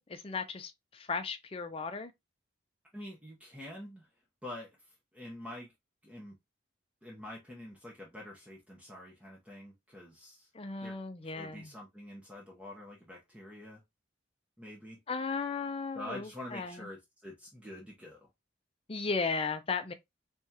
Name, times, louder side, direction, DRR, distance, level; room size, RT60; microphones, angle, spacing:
voice 1, 0.0-2.1 10.5-11.7 15.1-16.9 18.9-19.9, left 4 dB, 30° left, 0.5 m, -36 dB
voice 2, 2.9-4.1 4.4-4.7 5.1-5.7 6.0-6.4 7.0-10.5 10.8-11.0 11.2-13.8 14.6-15.0 15.9-18.3, left 1 dB, 5° right, 0.8 m, -46 dB
3.6 x 3.4 x 2.8 m
head